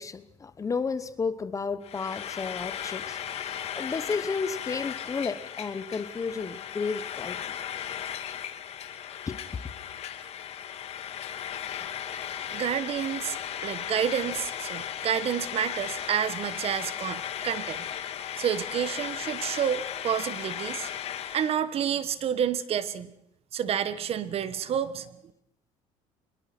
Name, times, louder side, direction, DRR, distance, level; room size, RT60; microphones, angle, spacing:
voice 1, 0.0-7.4 9.3-9.4, left 5 dB, 25° left, 14 dB, 1.1 m, -32 dB
Frying (food), 1.8-21.6, left 9 dB, 50° left, 1.8 m, -36 dB
voice 2, 12.5-17.9 18.4-20.9 21.3-23.1 23.5-25.1, right 9 dB, 45° right, 14 dB, 1.4 m, -29 dB
24.5 x 21.0 x 6.1 m, 0.80 s
cardioid pair, 125°, 14 cm